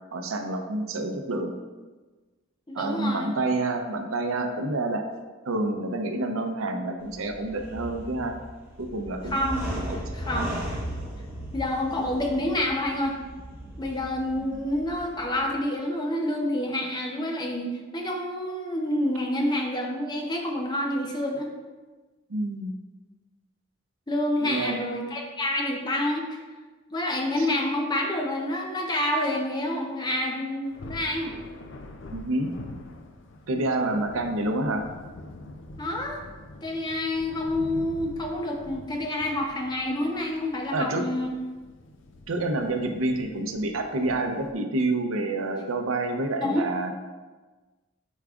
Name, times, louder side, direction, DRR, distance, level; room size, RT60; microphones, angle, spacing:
voice 1, 0.1-1.6 2.7-5.0 5.5-8.4 8.8-10.0 10.3-10.5 22.3-22.8 24.4-24.9 27.4-27.5 32.1-32.5 33.5-34.9 40.7-41.1 42.3-46.9, right 2 dB, 85° right, 5 dB, 0.6 m, -28 dB
voice 2, 2.7-3.3 9.3-9.7 10.1-10.5 11.5-13.2 13.8-17.7 17.9-21.5 24.1-26.4 26.9-31.3 35.8-36.2 36.6-41.3 46.4-46.7, left 1 dB, 20° left, 1 dB, 0.7 m, -28 dB
sound 1, 7.0-15.5, equal, 10° right, 1.1 m, -37 dB
Thunder, 30.6-44.5, left 2 dB, 60° left, 0.5 m, -45 dB
8.3 x 4.7 x 2.4 m, 1.3 s
head